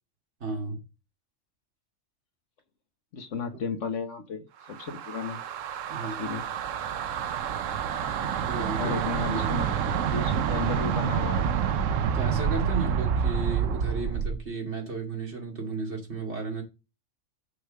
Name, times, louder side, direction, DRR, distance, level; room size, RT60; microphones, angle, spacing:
voice 1, 0.4-0.8 5.9-6.2 8.2-9.0 9.3-9.5 12.1-16.6, right 4 dB, 60° right, 2.7 m, -34 dB
voice 2, 3.1-5.4 6.0-6.4 8.7-11.5, left 5 dB, 75° left, 1.5 m, -34 dB
sound 1, 4.7-14.4, right 7 dB, 85° right, 1.1 m, -28 dB
6.4 x 4.8 x 6.5 m
omnidirectional pair, 1.3 m